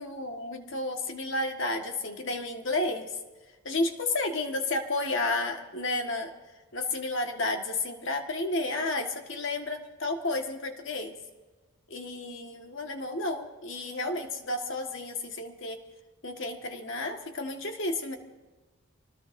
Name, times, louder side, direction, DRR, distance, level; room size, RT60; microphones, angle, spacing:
voice 1, 0.0-3.1 3.7-6.3 6.7-11.1 11.9-15.8 16.2-18.2, left 2 dB, 60° left, 4 dB, 1.6 m, -31 dB
25.5 x 19.5 x 2.7 m, 1.2 s
head